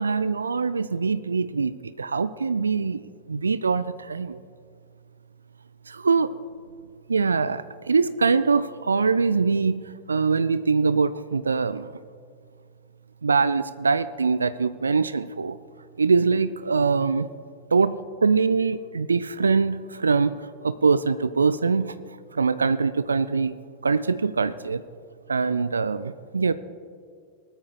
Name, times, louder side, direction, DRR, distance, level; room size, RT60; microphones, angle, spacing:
voice 1, 0.0-3.0 3.3-4.4 5.9-6.3 7.1-11.9 13.2-15.6 16.0-17.3 17.7-21.9 22.3-23.6 23.8-24.8 25.3-26.5, right 4 dB, 75° right, 15 dB, 0.3 m, -23 dB
20.0 x 13.5 x 2.3 m, 2.2 s
figure-of-eight pair, 90°, 0 cm